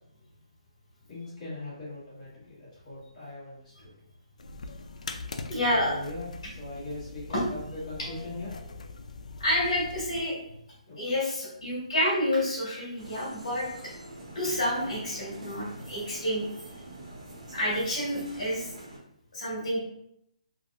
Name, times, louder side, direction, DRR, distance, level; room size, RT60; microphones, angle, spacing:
voice 1, 1.1-3.9 5.6-6.3 6.6-8.5 10.9-11.2 17.4-17.5, left 2 dB, 15° left, -12 dB, 1.2 m, -40 dB
sound 1, 4.4-10.3, left 3 dB, 75° left, 0.4 m, -42 dB
voice 2, 5.5-6.0 9.4-10.4 10.9-13.7 14.3-16.4 17.5-18.7 19.3-19.8, left 1 dB, 40° left, -8 dB, 1.5 m, -29 dB
sound 2, 13.0-19.0, right 2 dB, 65° right, 1.2 m, -45 dB
3.2 x 2.5 x 2.4 m, 0.74 s
hypercardioid pair, 170°, 4 cm